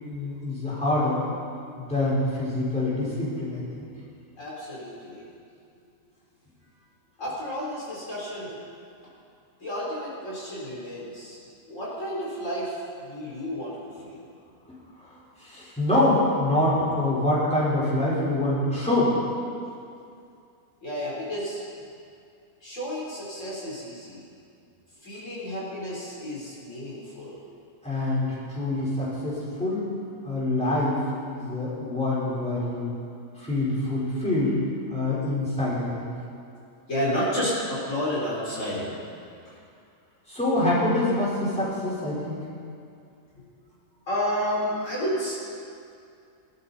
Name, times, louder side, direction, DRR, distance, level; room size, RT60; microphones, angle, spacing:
voice 1, 0.0-1.2 1.8-3.8 14.7-15.1 15.4-19.2 27.8-29.9 30.2-32.9 33.4-34.6 34.9-36.2 40.3-42.4, left 1 dB, 5° left, -8 dB, 4.3 m, -25 dB
voice 2, 4.4-5.3 5.8-5.9 7.2-8.6 9.6-11.4 11.7-14.2 20.8-21.6 22.6-24.2 25.0-27.4 36.9-39.0 43.3-43.4 44.1-45.3, equal, 55° left, -7 dB, 4.4 m, -31 dB
21.5 x 12.5 x 4.2 m, 2.4 s
omnidirectional pair, 1.5 m